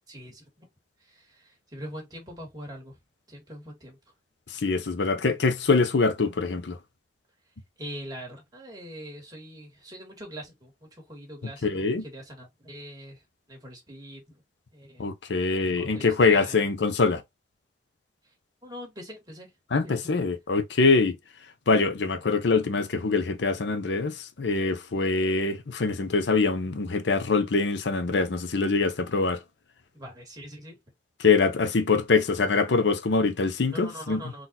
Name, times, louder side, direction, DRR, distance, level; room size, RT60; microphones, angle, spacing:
voice 1, 0.1-0.7 1.0-3.0 3.3-4.0 7.8-14.4 14.7-15.1 15.8-16.6 18.2-18.3 18.6-19.5 19.8-20.2 29.9-30.8 33.7-34.5, equal, 20° right, 1.9 m, -43 dB
voice 2, 4.5-6.8 11.6-12.0 15.0-17.2 19.7-21.2 21.7-29.4 31.2-34.2, left 4 dB, 75° left, 0.7 m, -24 dB
4.0 x 2.5 x 4.0 m
head